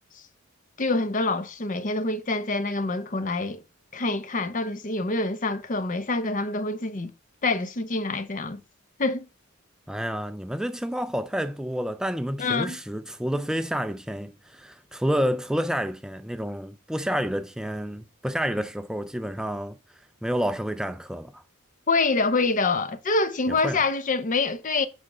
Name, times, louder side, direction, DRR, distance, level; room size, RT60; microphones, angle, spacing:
voice 1, 0.8-3.6 3.9-7.1 7.4-8.6 9.0-9.3 12.4-12.8 21.9-24.9, left 3 dB, 40° left, 0.7 m, -26 dB
voice 2, 9.9-21.4 23.5-23.8, equal, 5° right, 0.3 m, -29 dB
9.8 x 3.6 x 6.5 m
head